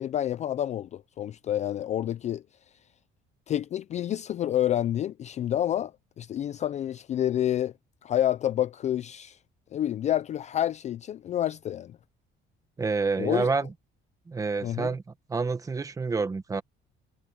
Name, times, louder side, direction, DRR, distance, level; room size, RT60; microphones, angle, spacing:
voice 1, 0.0-2.4 3.5-5.9 6.2-7.7 8.0-9.4 9.7-12.0 13.2-13.5 14.6-14.9, left 11 dB, 35° left, 0.4 m, -28 dB
voice 2, 12.8-13.7 14.3-15.0 15.3-16.6, right 4 dB, 15° right, 1.0 m, -28 dB
cardioid pair, 175°, 21 cm